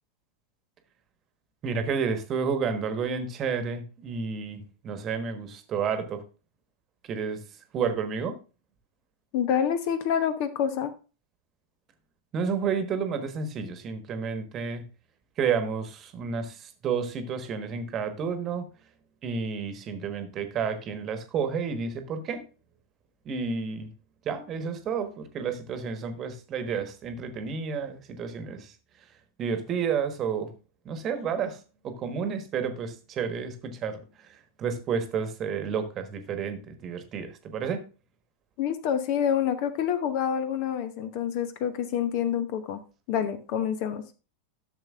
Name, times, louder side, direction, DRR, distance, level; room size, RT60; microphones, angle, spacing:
voice 1, 1.6-6.2 7.0-7.4 7.7-8.4 12.3-14.8 15.4-18.7 19.2-22.4 23.2-23.9 24.2-28.7 29.4-30.5 30.8-37.8, right 6 dB, 30° right, 8 dB, 1.3 m, -31 dB
voice 2, 9.3-10.9 38.6-42.8 43.1-44.0, left 8 dB, 45° left, 11 dB, 0.9 m, -27 dB
12.5 x 6.9 x 2.4 m, 0.33 s
figure-of-eight pair, 90°, 0 cm